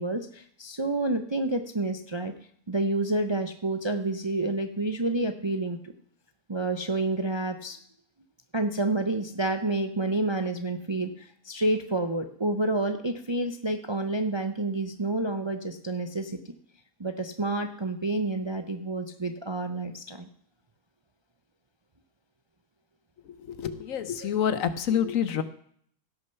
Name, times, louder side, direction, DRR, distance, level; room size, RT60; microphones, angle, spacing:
voice 1, 0.0-2.3 2.7-5.9 6.5-7.8 8.5-16.4 17.0-20.3 24.2-24.3, right 2 dB, 30° right, 8 dB, 0.5 m, -29 dB
voice 2, 23.5-25.4, left 8 dB, 65° left, 13 dB, 1.2 m, -27 dB
16.5 x 6.5 x 5.7 m, 0.63 s
omnidirectional pair, 1.5 m